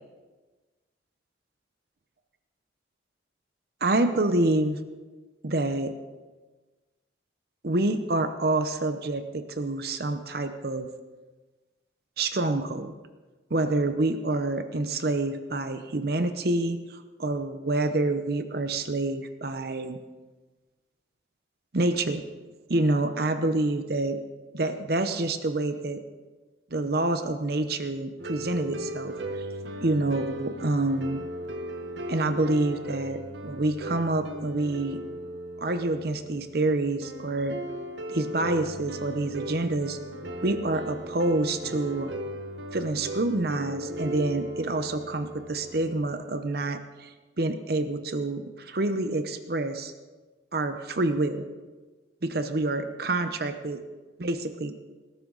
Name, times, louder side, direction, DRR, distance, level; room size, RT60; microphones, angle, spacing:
voice 1, 3.8-4.8 5.4-5.9 7.6-10.9 12.2-12.9 13.5-20.0 21.7-22.3 22.7-24.2 24.5-26.0 26.7-29.5 29.8-31.2 32.1-35.0 35.6-37.6 38.1-40.0 40.4-42.1 42.7-49.9 50.5-51.4 52.2-53.8 54.2-54.8, right 2 dB, 55° right, 9 dB, 0.8 m, -27 dB
sound 1, 28.2-46.2, right 1 dB, 70° right, 1.1 m, -37 dB
19.5 x 12.0 x 4.0 m, 1.3 s
head